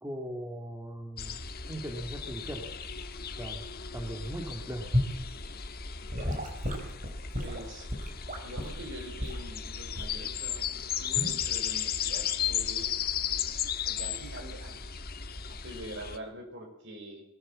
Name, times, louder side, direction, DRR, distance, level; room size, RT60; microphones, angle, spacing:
voice 1, 0.0-1.4 1.7-2.7 3.4-3.6 3.9-4.9, right 1 dB, 10° right, 2 dB, 2.0 m, -38 dB
sound 1, 1.2-16.2, left 8 dB, 45° left, 1.4 m, -35 dB
Gurgling / Sink (filling or washing) / Liquid, 4.9-5.2 6.1-8.8 9.2-9.4 9.9-10.2 11.1-11.4, left 1 dB, 35° right, 4.8 m, -32 dB
voice 2, 7.4-7.9 8.4-10.7 11.0-12.9 13.9-14.8 15.5-17.2, right 1 dB, 55° right, 3 dB, 5.5 m, -44 dB
22.0 x 16.5 x 7.4 m, 0.84 s
head